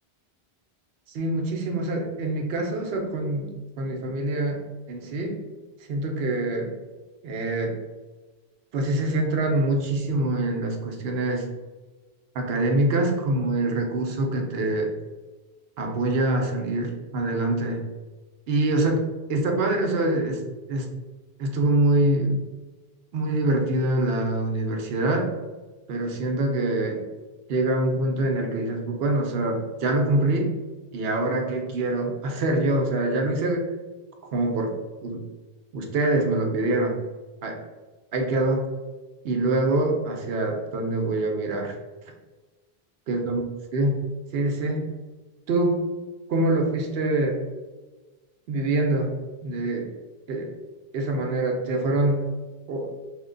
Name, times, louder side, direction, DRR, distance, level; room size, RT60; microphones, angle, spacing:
voice 1, 1.1-3.5 3.8-4.6 4.9-5.4 5.9-6.7 7.2-7.8 8.7-11.5 12.3-14.9 15.8-17.8 18.5-19.0 19.3-20.4 20.7-20.9 21.4-22.4 23.1-25.3 25.9-27.0 27.5-30.5 30.9-33.7 34.3-34.7 35.0-35.2 35.7-37.0 37.4-37.6 38.1-38.7 39.2-41.7 43.1-43.4 43.7-44.0 44.3-44.9 45.5-45.8 46.3-47.4 48.5-49.2 49.4-49.9 50.3-50.5 50.9-52.2 52.7-52.9, right 2 dB, 75° right, 2 dB, 0.8 m, -25 dB
3.0 x 2.1 x 3.7 m, 1.2 s
omnidirectional pair, 1.1 m